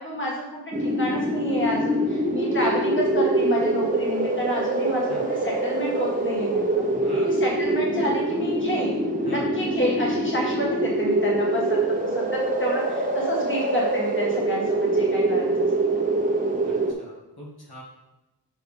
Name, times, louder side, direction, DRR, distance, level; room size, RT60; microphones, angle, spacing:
voice 1, 0.0-5.1 5.4-6.8 7.2-8.9 9.3-11.8 12.1-15.8, equal, 30° left, -4 dB, 1.7 m, -29 dB
sound 1, 0.7-16.9, right 1 dB, 20° right, 1.1 m, -24 dB
voice 2, 6.9-7.3 9.2-9.5 16.4-17.8, equal, 60° left, -5 dB, 2.0 m, -42 dB
6.7 x 6.4 x 3.5 m, 1.0 s
wide cardioid pair, 70°, 41 cm